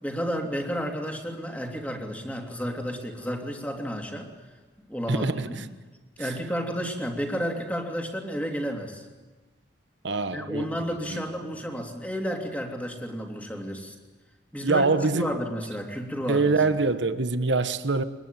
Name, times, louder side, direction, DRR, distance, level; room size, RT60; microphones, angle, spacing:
voice 1, 0.0-4.3 4.9-5.6 6.2-9.1 10.3-13.9 14.5-16.5, equal, 10° left, 3.0 m, -31 dB
voice 2, 5.1-5.7 6.2-6.3 10.0-11.5 14.6-15.3 16.3-18.0, right 3 dB, 75° right, 1.2 m, -25 dB
25.0 x 21.0 x 9.1 m
head